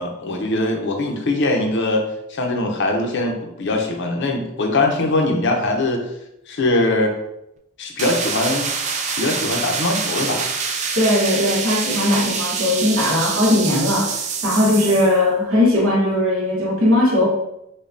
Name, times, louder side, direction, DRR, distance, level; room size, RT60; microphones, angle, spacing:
voice 1, 0.0-2.0 2.3-6.0 6.5-7.1 7.8-8.7 9.2-10.5 14.7-14.8, left 2 dB, 60° left, 2 dB, 0.6 m, -21 dB
sound 1, 8.0-15.2, right 5 dB, 35° right, 0.3 m, -25 dB
voice 2, 10.9-14.2 14.4-17.3, left 1 dB, 70° right, -2 dB, 1.1 m, -18 dB
5.1 x 2.3 x 2.6 m, 0.85 s
head